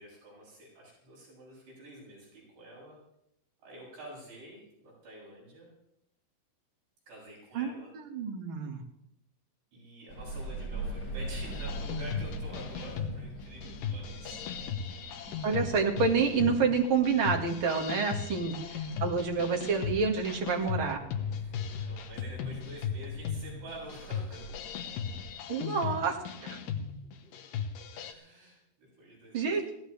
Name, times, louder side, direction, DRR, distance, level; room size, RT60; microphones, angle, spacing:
voice 1, 0.0-3.0 3.6-5.7 7.1-7.9 9.7-14.5 14.8-15.5 21.3-24.6 27.0-27.3 27.9-29.7, right 1 dB, 75° right, -5 dB, 9.5 m, -49 dB
voice 2, 7.5-8.8 15.4-21.0 25.5-26.6 29.3-29.8, right 5 dB, 45° right, 1 dB, 1.8 m, -28 dB
sound 1, 10.1-25.2, right 1 dB, 30° left, 6.4 m, -43 dB
sound 2, 11.5-28.1, left 7 dB, 70° left, 2.5 m, -37 dB
21.5 x 17.0 x 3.3 m, 0.78 s
omnidirectional pair, 4.7 m